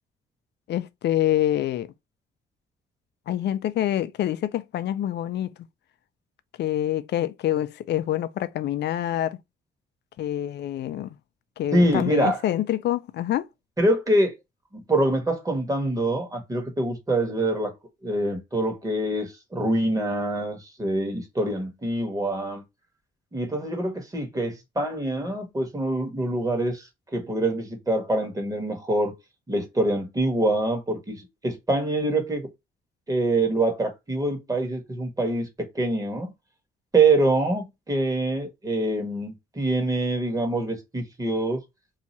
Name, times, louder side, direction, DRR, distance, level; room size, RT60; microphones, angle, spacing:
voice 1, 0.7-1.9 3.3-5.5 6.6-9.4 10.2-11.2 11.6-13.5, left 12 dB, 60° left, 0.4 m, -26 dB
voice 2, 11.7-12.4 13.8-14.3 14.7-17.7 18.0-22.6 23.3-29.1 29.5-32.5 33.1-36.3 36.9-41.6, right 2 dB, 15° right, 1.2 m, -25 dB
2.7 x 2.4 x 4.1 m
cardioid pair, 90°, 20 cm